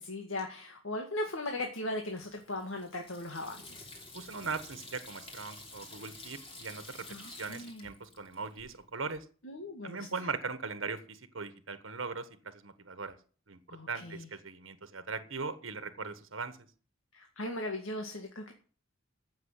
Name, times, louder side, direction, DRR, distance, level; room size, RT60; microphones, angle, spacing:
voice 1, 0.0-3.9 7.1-7.9 9.4-10.1 13.7-14.3 17.1-18.5, left 1 dB, 75° left, 3 dB, 2.0 m, -38 dB
Water tap faucet / Sink (filling or washing), 2.0-8.8, left 2 dB, 30° left, 3.1 m, -50 dB
voice 2, 4.1-9.2 9.8-13.2 13.5-16.6, right 4 dB, 70° right, 11 dB, 1.4 m, -40 dB
15.0 x 6.7 x 8.1 m, 0.41 s
head